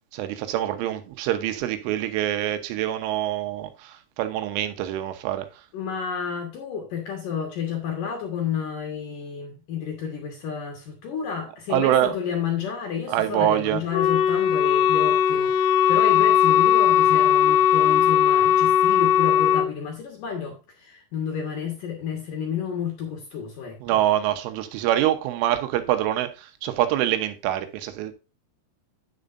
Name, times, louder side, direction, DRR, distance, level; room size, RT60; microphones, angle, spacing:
voice 1, 0.1-5.5 11.7-12.1 13.1-13.8 23.8-28.1, right 12 dB, 75° right, 3.3 m, -25 dB
voice 2, 5.7-24.0, left 7 dB, 65° left, 2.2 m, -31 dB
Wind instrument woodwind instrument, 13.9-19.7, left 10 dB, 85° left, 3.4 m, -18 dB
10.0 x 8.8 x 2.6 m
omnidirectional pair, 6.0 m